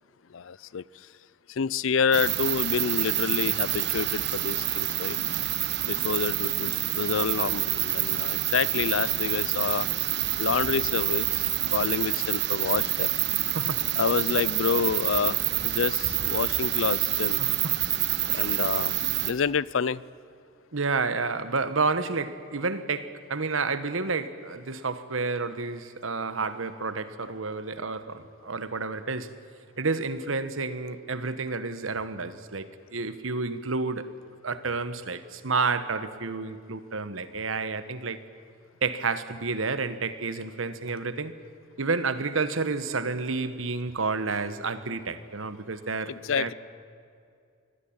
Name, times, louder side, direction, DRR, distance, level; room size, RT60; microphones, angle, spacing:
voice 1, 0.3-0.8 1.6-5.2 5.9-9.9 10.4-11.4 11.7-13.1 14.0-15.4 15.6-17.4 18.3-19.0 19.3-20.0 46.2-46.5, left 6 dB, 75° left, 21 dB, 0.5 m, -28 dB
sound 1, 2.1-19.3, right 13 dB, 55° right, 1.3 m, -27 dB
voice 2, 13.5-13.9 17.4-17.8 18.3-18.7 20.7-29.3 29.8-34.1 34.4-38.2 38.8-41.4 41.8-46.5, right 4 dB, 85° right, 12 dB, 1.2 m, -30 dB
24.5 x 17.0 x 8.7 m, 2.3 s
head